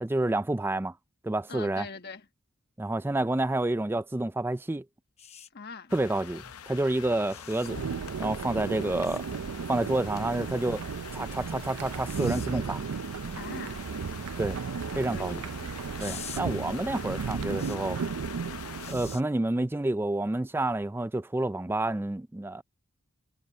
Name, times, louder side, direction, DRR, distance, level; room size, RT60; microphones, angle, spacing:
voice 1, 0.0-0.9 1.2-1.9 2.8-4.8 5.9-7.8 8.2-9.2 9.7-10.8 11.1-12.8 14.4-14.6 15.0-15.4 16.0-18.0 18.9-22.6, right 2 dB, 10° right, 0.3 m, -29 dB
voice 2, 1.5-2.3 5.5-5.9 13.3-13.8 15.1-15.7, left 4 dB, 45° left, 1.2 m, -42 dB
sound 1, 5.2-5.5 7.3-7.7 9.0-9.2 12.0-12.5 16.0-16.4 17.6-17.8 18.8-19.2 20.7-20.9, left 9 dB, 30° left, 0.9 m, -44 dB
sound 2, 5.9-18.9, left 8 dB, 80° left, 0.7 m, -45 dB
sound 3, 7.7-19.2, right 6 dB, 85° right, 0.5 m, -35 dB
head